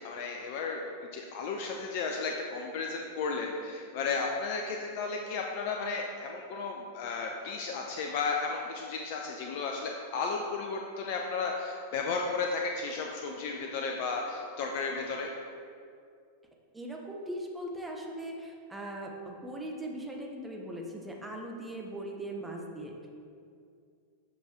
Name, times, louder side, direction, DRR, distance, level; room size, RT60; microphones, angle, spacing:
voice 1, 0.0-15.3, left 4 dB, 50° left, 1 dB, 0.5 m, -34 dB
voice 2, 16.7-23.1, right 1 dB, 10° right, 0 dB, 0.9 m, -40 dB
7.6 x 5.2 x 3.1 m, 2.3 s
figure-of-eight pair, 90°, 0 cm